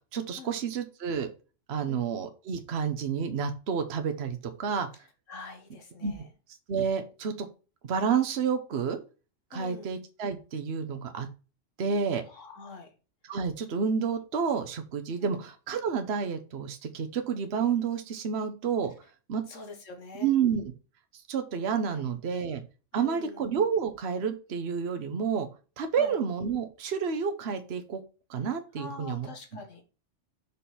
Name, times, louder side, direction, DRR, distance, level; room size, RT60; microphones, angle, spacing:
voice 1, 0.1-1.3 1.7-4.9 6.0-6.1 6.7-7.5 7.8-9.0 9.5-11.3 11.8-12.2 13.3-18.9 19.3-19.4 20.2-20.7 21.3-22.6 22.9-25.5 25.8-28.0 28.3-29.6, right 6 dB, 60° right, 7 dB, 1.2 m, -30 dB
voice 2, 5.3-6.2 9.5-10.0 12.3-12.9 15.2-15.4 19.5-20.3 21.9-22.0 22.9-23.5 26.0-26.1 28.8-29.8, left 3 dB, 80° left, 5 dB, 1.9 m, -45 dB
6.0 x 5.4 x 4.2 m, 0.33 s
omnidirectional pair, 1.3 m